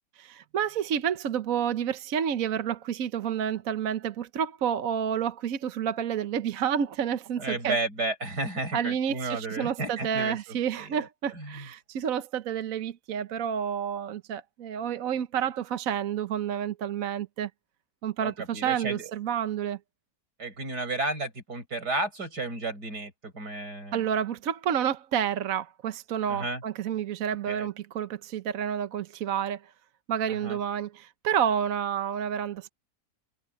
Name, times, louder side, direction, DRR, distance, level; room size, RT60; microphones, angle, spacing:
voice 1, 0.2-7.8 8.7-17.5 18.0-19.8 23.9-29.6 30.1-32.7, right 8 dB, 60° right, 1.2 m, -29 dB
voice 2, 7.4-10.4 10.7-11.1 11.3-11.7 18.2-19.1 20.4-24.0 26.3-26.6 27.5-27.7 30.3-30.6, right 2 dB, 85° right, 6.3 m, -33 dB
omnidirectional pair, 1.7 m